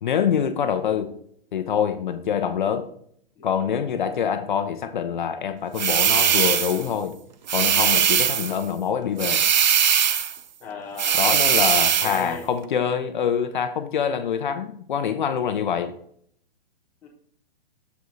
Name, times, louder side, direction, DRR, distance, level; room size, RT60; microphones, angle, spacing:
voice 1, 0.0-1.1 1.5-2.9 3.4-7.1 7.5-9.4 11.1-15.9, left 8 dB, 50° left, 8 dB, 0.7 m, -25 dB
sound 1, 5.8-6.9 7.5-8.6 9.2-10.4 11.0-12.2, right 8 dB, 50° right, 0.5 m, -20 dB
voice 2, 10.6-11.4 11.7-12.5 17.0-17.1, left 4 dB, 5° left, -4 dB, 0.7 m, -37 dB
7.0 x 4.8 x 3.9 m, 0.63 s
hypercardioid pair, 170°, 30 cm